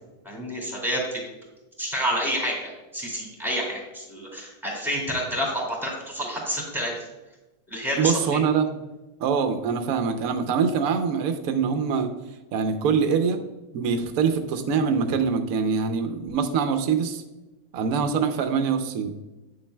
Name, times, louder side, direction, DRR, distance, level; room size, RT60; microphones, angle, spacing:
voice 1, 0.2-1.2 1.8-6.9 7.7-8.4, equal, ahead, -2 dB, 2.2 m, -29 dB
voice 2, 8.0-8.8 9.2-12.1 12.5-13.4 13.7-17.2 17.7-19.2, right 6 dB, 70° right, 7 dB, 1.0 m, -24 dB
9.0 x 7.1 x 2.2 m, 1.1 s
omnidirectional pair, 1.7 m